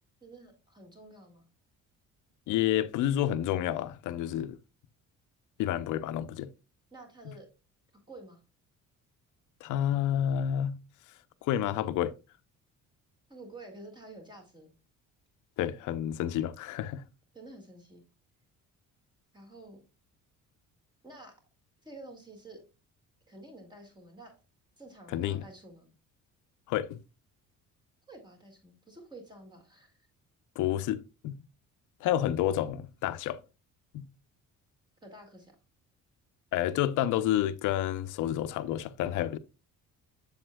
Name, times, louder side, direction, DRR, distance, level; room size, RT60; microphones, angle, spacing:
voice 1, 0.2-1.5 6.9-7.5 8.1-8.4 13.3-14.7 17.3-18.0 19.3-19.8 21.0-21.4 21.8-22.6 23.3-24.4 24.8-26.0 28.1-30.0 35.0-35.6, right 2 dB, 15° right, 1.9 m, -50 dB
voice 2, 2.5-4.6 5.6-6.5 7.3-7.4 9.6-10.8 11.4-12.2 15.6-17.0 25.1-25.4 26.7-27.0 30.6-31.4 32.0-33.4 33.9-34.1 36.5-39.4, left 11 dB, 75° left, 0.6 m, -29 dB
7.6 x 7.1 x 2.2 m
cardioid pair, 170°, 30 cm